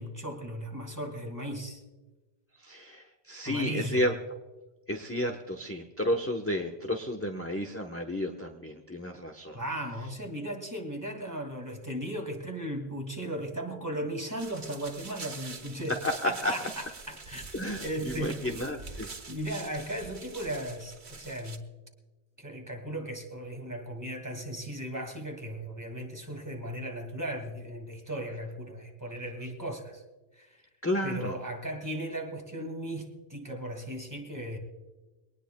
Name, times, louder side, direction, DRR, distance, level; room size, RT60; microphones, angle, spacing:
voice 1, 0.0-1.8 3.4-4.0 9.5-16.0 16.2-17.5 17.8-18.6 19.0-21.6 22.4-30.0 30.3-30.6 31.0-34.6, right 1 dB, 15° right, 2 dB, 2.3 m, -36 dB
voice 2, 2.6-4.1 4.9-9.6 16.0-16.5 17.5-19.1 30.8-31.3, left 1 dB, 15° left, 3 dB, 0.9 m, -32 dB
sound 1, 14.4-21.6, right 4 dB, 80° right, 1.6 m, -45 dB
23.0 x 19.0 x 2.3 m, 1.2 s
omnidirectional pair, 1.1 m